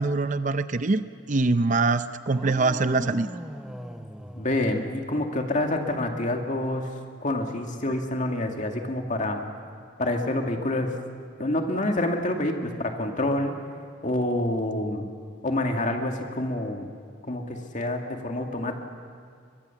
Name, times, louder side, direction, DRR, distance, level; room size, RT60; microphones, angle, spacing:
voice 1, 0.0-3.3, right 3 dB, 40° right, 12 dB, 0.6 m, -24 dB
sound 1, 2.3-5.4, equal, 5° right, 0.7 m, -40 dB
voice 2, 4.4-6.9 7.2-9.4 10.0-11.0 11.4-13.5 14.0-15.0 15.4-16.9 17.3-18.8, left 1 dB, 40° left, 3 dB, 2.2 m, -27 dB
22.5 x 22.5 x 7.2 m, 2.2 s
head